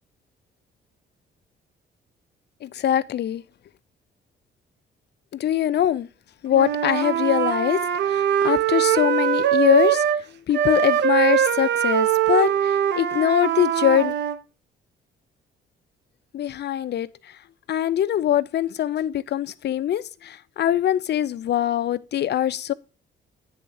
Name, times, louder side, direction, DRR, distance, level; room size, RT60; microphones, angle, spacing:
voice 1, 2.6-3.4 5.3-6.1 6.4-10.0 10.5-14.1 16.3-17.1 17.7-22.7, left 11 dB, 60° left, 0.6 m, -23 dB
Wind instrument woodwind instrument, 6.5-10.2 10.5-14.4, right 10 dB, 60° right, 0.9 m, -22 dB
9.8 x 3.5 x 6.4 m
cardioid pair, 90°, 20 cm